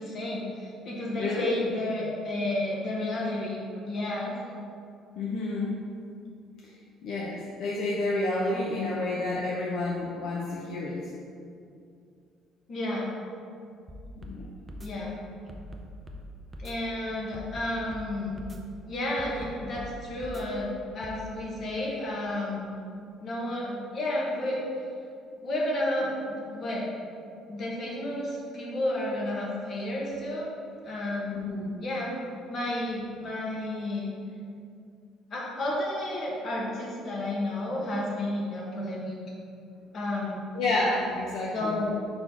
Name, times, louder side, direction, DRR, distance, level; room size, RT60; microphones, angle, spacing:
voice 1, 0.0-4.3 12.7-13.1 14.8-15.2 16.6-18.4 18.9-20.7 20.9-22.8 23.2-24.6 25.4-26.9 27.5-30.5 30.8-31.4 31.8-32.1 32.5-34.1 35.3-39.2 39.9-40.4 41.5-42.0, left 1 dB, 35° left, -4 dB, 1.3 m, -31 dB
voice 2, 1.2-1.6 5.2-5.8 7.0-11.0 14.2-14.5 31.3-31.7 40.5-41.8, left 2 dB, 60° left, -4 dB, 0.7 m, -29 dB
sound 1, 13.9-14.4 14.7-14.9 15.5-16.2 16.5-16.7 17.3-18.1 18.4-18.6 19.2-19.9 20.2-20.4 21.0-21.2, left 1 dB, 15° right, 0.5 m, -42 dB
4.4 x 4.3 x 5.5 m, 2.4 s
cardioid pair, 160°, 0 cm